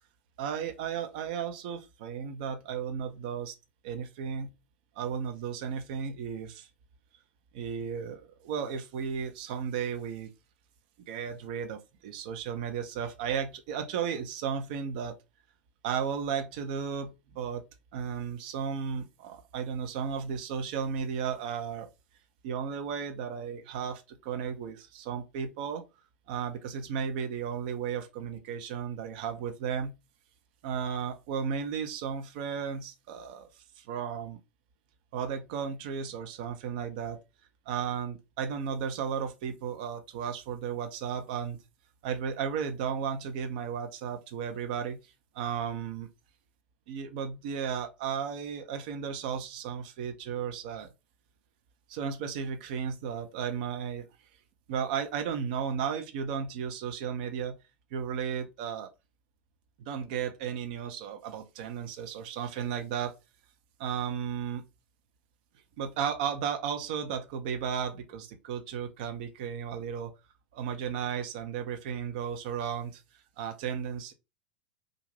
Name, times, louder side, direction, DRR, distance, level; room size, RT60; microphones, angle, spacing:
voice 1, 0.4-3.5 3.8-4.5 5.0-6.7 7.5-10.3 11.1-15.2 15.8-17.6 17.9-21.9 22.4-25.8 26.3-29.9 30.6-34.4 35.1-37.2 37.7-41.6 42.0-45.0 45.3-46.1 46.9-50.9 51.9-54.0 54.7-57.6 57.9-58.9 59.9-63.2 63.8-64.6 65.8-70.1 70.5-73.0 73.4-74.1, right 7 dB, 50° right, 0.6 m, -34 dB
2.5 x 2.4 x 3.2 m
figure-of-eight pair, 85°, 6 cm